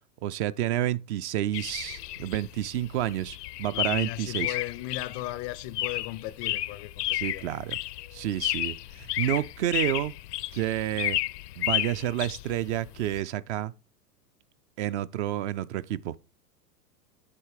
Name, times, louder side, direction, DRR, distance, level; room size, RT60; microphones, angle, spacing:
voice 1, 0.2-4.6 7.1-7.8 8.1-10.1 10.5-11.2 11.6-13.7 14.8-16.2, right 12 dB, 45° right, 0.5 m, -30 dB
sound 1, 1.5-13.2, left 16 dB, 75° left, 0.6 m, -32 dB
voice 2, 3.7-7.0 7.3-7.5, left 17 dB, 30° left, 0.4 m, -36 dB
8.4 x 5.7 x 4.8 m
hypercardioid pair, 115°, 48 cm